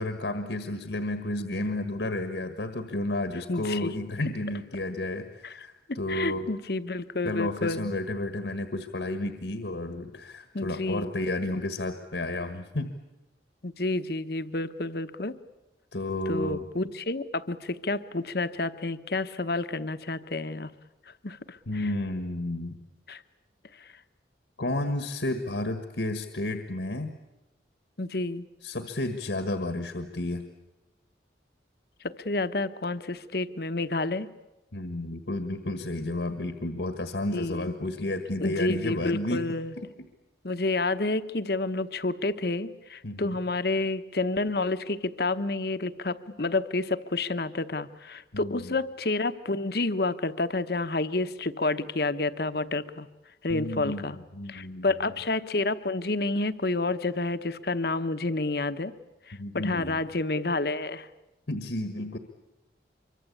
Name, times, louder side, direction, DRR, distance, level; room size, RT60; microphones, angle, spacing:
voice 1, 0.0-6.5 7.2-12.9 15.9-16.6 21.7-22.8 24.6-27.1 28.6-30.4 34.7-39.6 43.0-43.4 48.3-48.7 53.5-54.9 59.4-60.0 61.5-62.2, left 1 dB, 75° left, 8 dB, 1.6 m, -32 dB
voice 2, 3.5-3.9 5.4-5.5 5.9-7.9 10.5-11.1 13.6-15.3 16.3-20.7 21.1-21.9 23.1-23.2 23.7-23.9 28.0-28.5 32.0-34.3 37.3-37.7 38.4-39.7 40.4-53.1 53.4-54.2 54.5-58.9 59.3-61.1, left 2 dB, 55° left, 12 dB, 1.0 m, -29 dB
25.0 x 24.0 x 8.5 m, 1.0 s
head